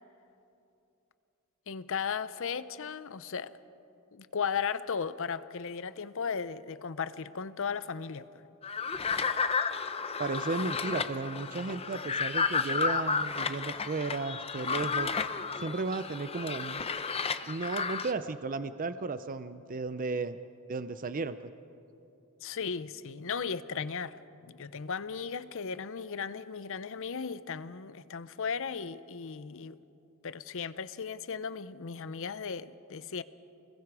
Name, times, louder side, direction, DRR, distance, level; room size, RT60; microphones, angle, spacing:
voice 1, 1.7-3.5 4.1-8.4 22.4-24.2 24.4-29.8 30.2-33.2, left 6 dB, 65° left, 15 dB, 0.7 m, -36 dB
sound 1, 8.6-18.1, left 5 dB, 30° left, 0.7 m, -32 dB
voice 2, 10.2-15.2 15.6-16.8 17.4-20.4 20.7-21.5, right 3 dB, 40° right, 12 dB, 0.5 m, -34 dB
30.0 x 21.5 x 4.8 m, 2.8 s
head